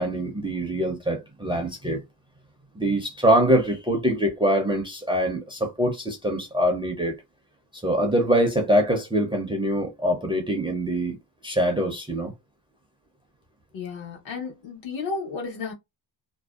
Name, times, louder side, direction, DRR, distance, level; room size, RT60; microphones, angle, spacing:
voice 1, 0.0-2.0 2.8-7.1 7.7-11.2 11.4-12.3, right 1 dB, 10° right, 0.4 m, -24 dB
voice 2, 13.7-15.7, left 4 dB, 80° left, 1.1 m, -33 dB
2.6 x 2.1 x 2.3 m
cardioid pair, 155°, 45 cm